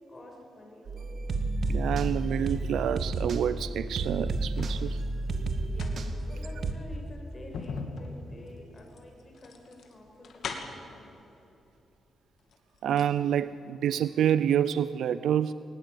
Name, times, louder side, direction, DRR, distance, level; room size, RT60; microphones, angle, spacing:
voice 1, 0.1-1.1 5.6-11.2, left 1 dB, 25° left, 0 dB, 5.3 m, -49 dB
sound 1, 0.9-6.7, right 2 dB, 55° right, 1.9 m, -31 dB
voice 2, 1.7-5.0 12.8-15.5, right 9 dB, 85° right, 15 dB, 0.5 m, -27 dB
sound 2, 3.9-4.8 5.5-10.9 11.9-12.0 12.4-13.2 13.5-13.6, left 4 dB, 65° left, 2.6 m, -41 dB
22.0 x 19.5 x 9.0 m, 2.9 s
wide cardioid pair, 140°, 0 cm